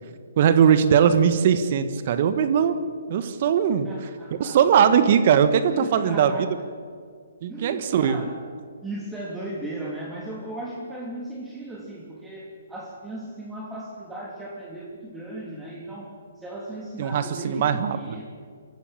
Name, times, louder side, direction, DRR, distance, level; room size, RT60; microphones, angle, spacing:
voice 1, 0.4-2.8 3.1-4.1 4.4-6.5 7.4-8.2 17.0-18.0, right 8 dB, 45° right, 10 dB, 1.5 m, -20 dB
voice 2, 3.8-4.6 5.0-5.1 5.7-6.7 7.5-8.4 8.8-18.2, right 1 dB, 10° right, -3 dB, 3.1 m, -36 dB
25.5 x 14.5 x 9.1 m, 2.1 s
figure-of-eight pair, 135°, 0 cm